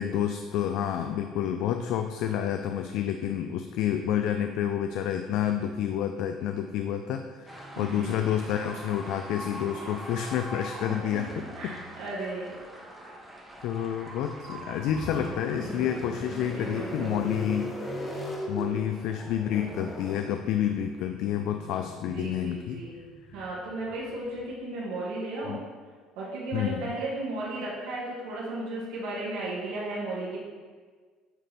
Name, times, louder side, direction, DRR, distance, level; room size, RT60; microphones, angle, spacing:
voice 1, 0.0-11.3 11.6-11.7 13.6-17.7 18.5-22.8 25.5-25.6 26.5-26.8, left 10 dB, 70° left, 6 dB, 0.3 m, -29 dB
sound 1, 7.5-19.3, right 1 dB, 10° right, 0.9 m, -44 dB
voice 2, 7.7-8.2 10.8-11.0 11.6-12.6 16.5-17.3 22.1-23.0 23.3-25.6 26.1-30.4, right 2 dB, 85° right, -6 dB, 1.6 m, -35 dB
sound 2, 14.5-24.4, left 1 dB, 15° left, 0.9 m, -39 dB
9.0 x 4.1 x 3.4 m, 1.5 s
cardioid pair, 140°, 0 cm